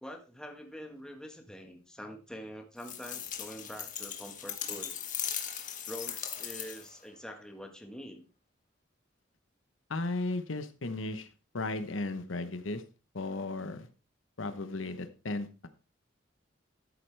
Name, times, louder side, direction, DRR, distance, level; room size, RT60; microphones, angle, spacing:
voice 1, 0.0-4.9 5.9-8.3, equal, 5° left, 3 dB, 1.5 m, -45 dB
sound 1, 2.8-7.0, left 9 dB, 40° left, 1.5 m, -38 dB
voice 2, 9.9-11.3 11.5-12.8 13.1-13.9 14.4-15.7, left 2 dB, 80° left, 10 dB, 1.0 m, -35 dB
13.0 x 7.9 x 3.4 m, 0.32 s
head